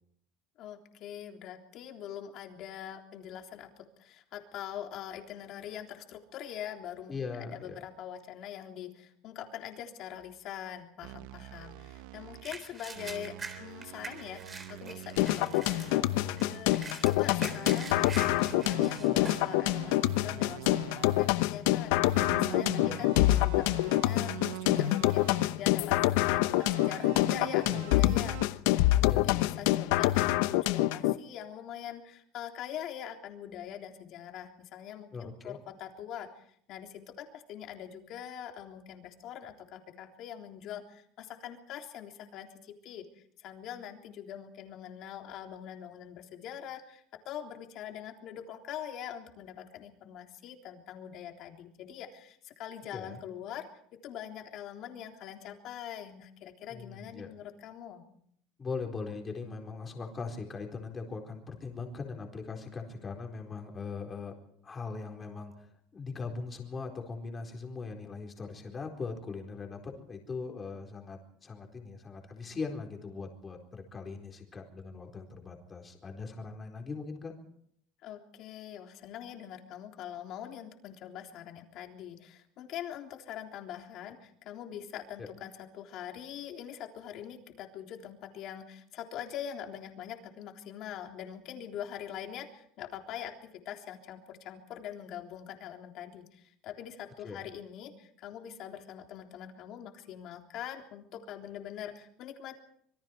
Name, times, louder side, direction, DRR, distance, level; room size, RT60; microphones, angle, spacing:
voice 1, 0.6-43.1 43.4-53.7 54.0-58.0 78.0-102.6, left 10 dB, 50° left, 3 dB, 3.5 m, -43 dB
voice 2, 7.1-7.8 22.6-23.1 29.1-29.2 35.1-35.6 52.9-53.2 56.7-57.3 58.6-64.3 64.6-77.3 85.2-85.3 97.2-97.5, left 4 dB, 20° left, 2 dB, 4.3 m, -40 dB
sound 1, 11.0-12.5 12.9-16.7 17.4-21.5 22.0-25.6 26.5-28.5, right 14 dB, 85° right, 0.9 m, -45 dB
sound 2, 12.4-19.5 20.0-20.1 20.6-21.0 21.7-21.9 22.2-23.4 23.7-24.2 24.6-24.7 25.6-26.1 26.5-29.6, right 3 dB, 20° right, 3.7 m, -45 dB
sound 3, 15.2-31.2, left 16 dB, 85° left, 0.9 m, -26 dB
26.5 x 23.5 x 4.7 m, 0.67 s
cardioid pair, 155°, 0 cm